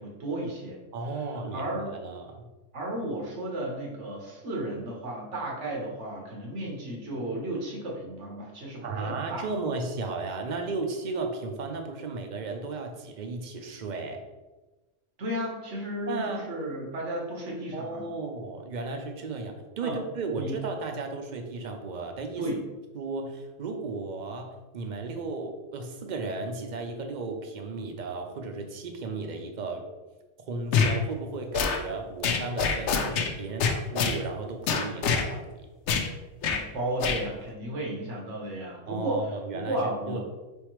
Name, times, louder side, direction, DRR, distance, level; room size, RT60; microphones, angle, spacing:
voice 1, 0.0-0.8 1.1-1.3 1.5-2.0 2.7-9.5 15.2-18.0 19.8-20.0 20.3-20.5 22.4-22.6 36.4-40.2, right 1 dB, 90° right, -2 dB, 1.4 m, -33 dB
voice 2, 0.9-1.7 2.0-2.5 8.8-14.2 16.1-16.5 17.7-22.5 22.9-29.8 30.5-35.5 38.9-39.8 40.1-40.2, right 3 dB, 50° right, 5 dB, 0.6 m, -34 dB
sound 1, 30.7-31.0 31.5-31.8 32.2-33.3 33.6-34.2 34.7-35.2 35.9-36.1 36.4-36.6 37.0-37.2, left 6 dB, 85° left, 0.9 m, -25 dB
4.6 x 3.5 x 3.0 m, 1.1 s
omnidirectional pair, 1.2 m